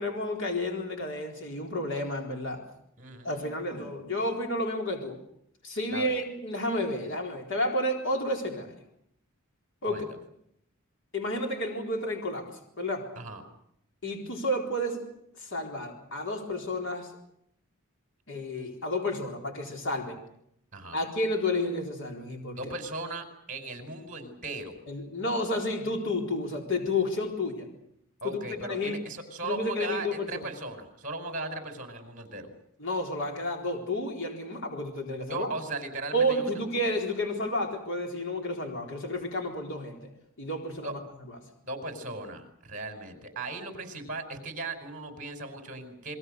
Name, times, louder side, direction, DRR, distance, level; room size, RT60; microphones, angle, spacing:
voice 1, 0.0-2.6 3.2-5.2 5.6-8.7 9.8-10.0 11.1-12.5 12.8-13.1 14.0-15.0 15.4-17.1 18.3-20.2 20.9-22.6 24.9-27.7 28.2-28.4 28.7-29.0 29.4-30.5 32.8-35.5 36.1-40.1 40.4-41.0, left 1 dB, 60° left, 2 dB, 4.2 m, -31 dB
voice 2, 3.0-3.5 5.9-6.2 9.8-10.2 13.2-13.4 20.7-21.0 22.5-24.7 28.2-32.5 35.3-36.6 40.8-40.9 41.6-46.2, right 2 dB, 35° right, 6 dB, 5.2 m, -37 dB
29.0 x 22.5 x 6.6 m, 0.73 s
head